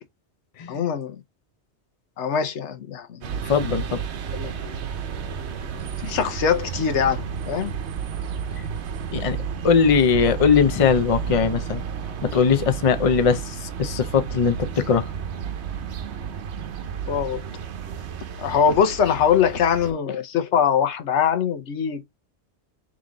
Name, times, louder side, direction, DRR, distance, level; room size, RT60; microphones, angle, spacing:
voice 1, 0.7-1.2 2.2-3.2 4.3-4.7 6.0-7.7 17.1-17.4 18.4-22.0, left 7 dB, 90° left, 1.1 m, -22 dB
sound 1, 3.2-19.9, right 7 dB, 75° right, 1.0 m, -32 dB
voice 2, 3.5-4.0 9.1-9.4 9.6-11.8 12.2-15.1, left 6 dB, 40° left, 0.6 m, -20 dB
3.8 x 3.1 x 3.7 m
omnidirectional pair, 1.1 m